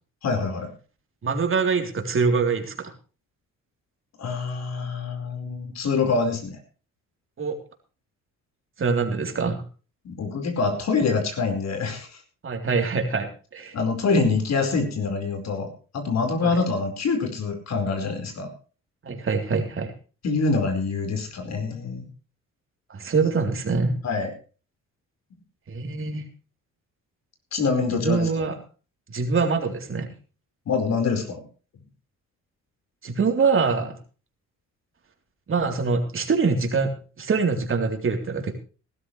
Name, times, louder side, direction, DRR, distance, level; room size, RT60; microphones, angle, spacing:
voice 1, 0.2-0.7 4.2-6.6 10.0-12.1 13.7-18.5 20.2-22.0 24.0-24.3 27.5-28.4 30.7-31.4, left 4 dB, 60° left, 5 dB, 4.8 m, -25 dB
voice 2, 1.2-2.9 7.4-7.6 8.8-9.6 12.4-13.8 16.4-16.6 19.0-19.9 22.9-23.9 25.7-26.2 28.0-28.5 29.1-30.1 33.0-34.0 35.5-38.5, right 4 dB, 45° right, 4 dB, 3.5 m, -24 dB
18.5 x 12.5 x 3.3 m, 0.36 s
cardioid pair, 90°, 30 cm